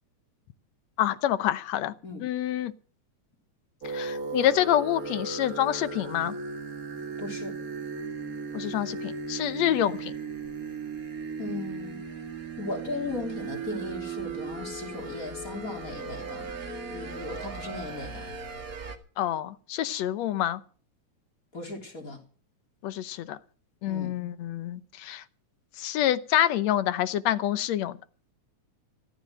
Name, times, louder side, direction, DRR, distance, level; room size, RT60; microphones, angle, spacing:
voice 1, 1.0-1.9 2.2-2.7 3.8-6.3 8.5-10.1 19.2-20.6 22.8-23.4 23.8-25.2 25.8-28.0, left 12 dB, 70° left, 2.0 m, -27 dB
sound 1, 3.8-19.0, right 4 dB, 35° right, 1.6 m, -36 dB
voice 2, 7.2-7.6 11.4-12.0 12.6-16.5 16.9-18.3 21.5-22.2 23.9-24.2, left 2 dB, 25° left, 3.8 m, -37 dB
14.5 x 13.5 x 6.4 m
omnidirectional pair, 3.4 m